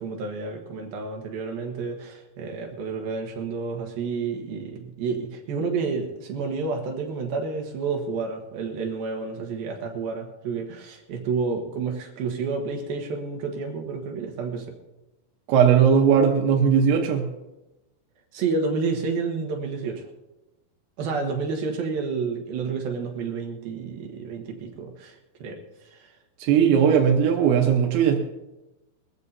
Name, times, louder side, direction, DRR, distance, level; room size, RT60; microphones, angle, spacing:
voice 1, 0.0-14.7 18.3-20.1 21.0-25.6 25.8-26.1, right 4 dB, 65° right, 2 dB, 2.9 m, -30 dB
voice 2, 15.5-17.3 26.4-28.2, right 7 dB, 80° right, 2 dB, 3.4 m, -18 dB
22.0 x 14.5 x 2.7 m, 1.0 s
omnidirectional pair, 5.3 m